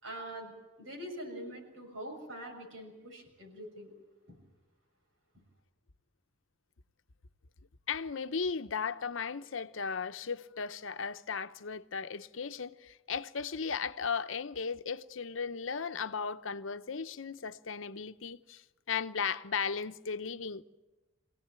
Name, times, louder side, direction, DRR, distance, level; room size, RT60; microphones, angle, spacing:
voice 1, 0.0-0.5 0.8-3.9 4.3-4.4 5.3-5.4, right 1 dB, 85° right, 6.6 m, -44 dB
voice 2, 7.9-20.6, left 5 dB, 75° left, 0.8 m, -36 dB
24.5 x 17.0 x 8.9 m
head